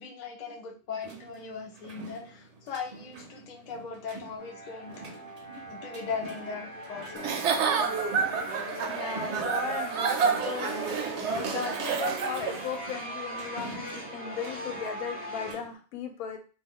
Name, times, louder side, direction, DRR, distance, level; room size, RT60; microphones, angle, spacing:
voice 1, 0.0-7.4 7.7-8.0 9.2-9.3, left 5 dB, 55° left, 1 dB, 0.4 m, -39 dB
sound 1, 1.0-15.7, right 3 dB, 80° right, 0.3 m, -47 dB
sound 2, 4.4-15.5, equal, 10° right, 0.7 m, -40 dB
Giggle / Chuckle chortle, 7.2-12.7, right 6 dB, 65° right, 0.7 m, -29 dB
voice 2, 8.9-10.7 11.3-16.4, left 7 dB, 85° left, 6 dB, 1.1 m, -37 dB
2.4 x 2.3 x 3.5 m, 0.37 s
omnidirectional pair, 1.5 m